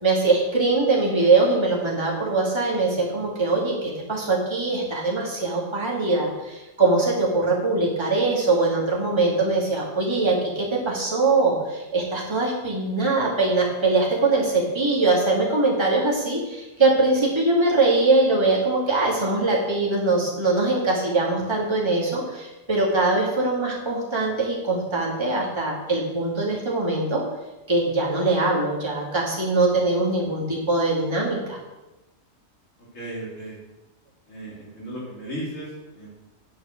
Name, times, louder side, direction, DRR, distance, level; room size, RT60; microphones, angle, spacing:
voice 1, 0.0-27.2 27.7-31.6, right 3 dB, 20° right, -4 dB, 2.4 m, -22 dB
voice 2, 32.9-33.6 34.3-36.2, right 1 dB, 75° left, -7 dB, 3.7 m, -35 dB
10.0 x 7.2 x 6.4 m, 1.0 s
omnidirectional pair, 1.3 m